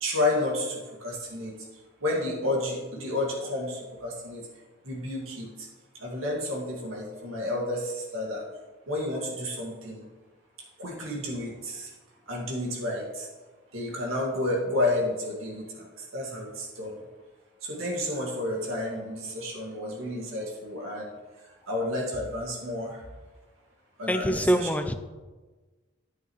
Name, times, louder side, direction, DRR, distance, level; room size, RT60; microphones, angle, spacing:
voice 1, 0.0-1.5 2.0-4.4 4.8-5.7 6.0-8.4 8.9-10.0 10.8-11.9 12.3-13.3 13.7-17.0 17.6-21.2 21.7-23.0 24.0-24.7, left 1 dB, 85° right, 1.9 m, -31 dB
voice 2, 24.1-24.9, equal, 5° left, 0.5 m, -24 dB
9.8 x 9.3 x 3.1 m
head